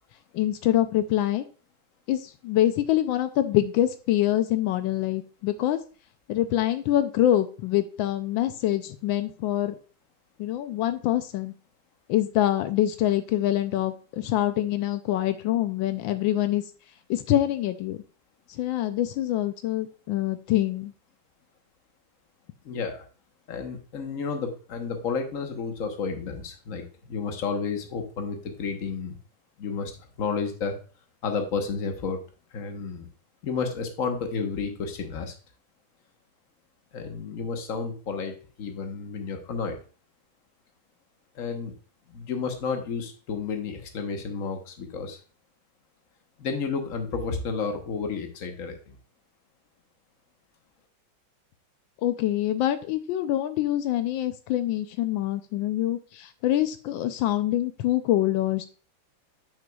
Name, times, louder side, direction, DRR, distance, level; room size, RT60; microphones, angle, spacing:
voice 1, 0.3-1.4 2.1-5.8 6.3-9.8 10.4-11.5 12.1-16.6 17.1-18.0 18.6-20.9 52.0-58.7, left 13 dB, 85° left, 10 dB, 1.3 m, -25 dB
voice 2, 22.6-23.0 23.5-29.2 29.6-30.7 31.2-32.2 32.5-33.1 33.4-35.3 36.9-39.8 41.3-41.7 42.1-45.2 46.4-49.0, left 5 dB, 50° left, 5 dB, 1.4 m, -31 dB
9.0 x 6.2 x 2.3 m, 0.37 s
omnidirectional pair, 2.1 m